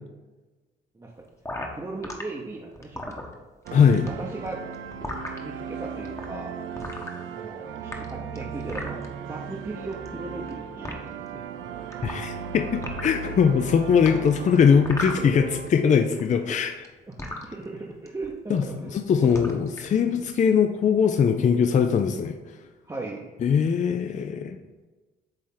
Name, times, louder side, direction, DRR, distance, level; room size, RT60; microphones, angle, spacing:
sound 1, 1.4-2.2 2.7-3.7 3.9-5.4 6.0-6.2 6.8-7.5 7.8-9.1 9.9-10.5 10.8-10.9 11.9-12.4 12.7-13.2 14.0-15.7 15.9-17.4 18.1-18.3 18.6-18.9 19.2-19.9, left 1 dB, 15° left, 1.0 m, -35 dB
voice 1, 1.7-3.4 3.7-4.6 5.4-6.5 7.3-9.0 9.3-11.4 15.2-16.8 17.1-19.3 20.0-20.2 22.8-23.3 24.5-24.7, right 2 dB, 15° right, -3 dB, 0.8 m, -38 dB
voice 2, 3.7-4.0 12.0-16.7 18.5-18.6 18.9-22.4 23.4-24.6, left 7 dB, 40° left, 6 dB, 0.4 m, -21 dB
sound 2, 3.7-15.7, right 6 dB, 80° right, 0.6 m, -37 dB
8.4 x 3.2 x 3.8 m, 1.2 s
cardioid pair, 90°, 20 cm